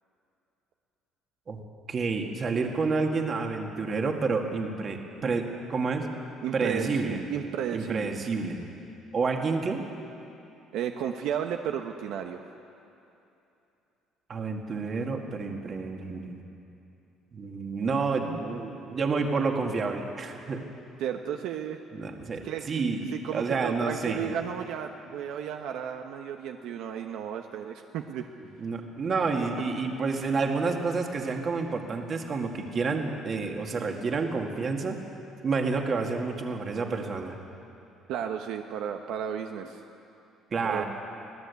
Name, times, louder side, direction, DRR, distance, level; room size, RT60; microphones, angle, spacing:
voice 1, 1.9-6.1 6.5-7.2 7.7-8.7 9.1-9.8 14.3-16.4 17.3-20.6 21.9-24.2 28.6-35.0 35.4-37.4 40.5-40.9, right 4 dB, 30° right, 3 dB, 2.0 m, -29 dB
voice 2, 6.4-8.1 10.7-12.4 21.0-21.8 22.4-22.8 23.1-28.2 38.1-39.8 40.6-40.8, right 9 dB, 65° right, 4 dB, 1.1 m, -33 dB
25.0 x 17.5 x 8.3 m, 2.8 s
cardioid pair, 170°, 0 cm